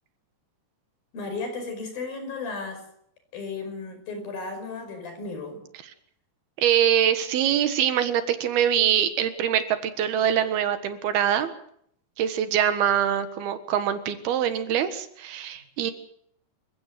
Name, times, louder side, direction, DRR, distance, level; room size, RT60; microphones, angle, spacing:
voice 1, 1.1-2.8 3.3-5.6, left 3 dB, 70° left, 6 dB, 7.0 m, -34 dB
voice 2, 6.6-11.5 12.2-15.9, right 9 dB, 85° right, 10 dB, 3.5 m, -24 dB
27.5 x 16.0 x 7.8 m, 0.70 s
omnidirectional pair, 4.3 m